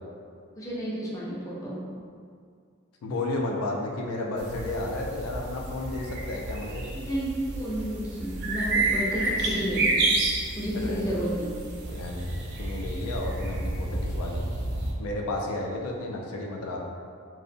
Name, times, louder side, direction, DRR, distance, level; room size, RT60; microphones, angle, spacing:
voice 1, 0.6-1.8 7.1-10.2 10.6-11.5, equal, 15° left, -6 dB, 0.4 m, -31 dB
voice 2, 3.0-6.9 10.7-11.0 11.9-14.4 15.0-16.8, left 2 dB, 85° left, 0 dB, 0.4 m, -32 dB
sound 1, 4.4-14.9, right 2 dB, 50° right, 0.3 m, -30 dB
2.6 x 2.0 x 2.5 m, 2.2 s
head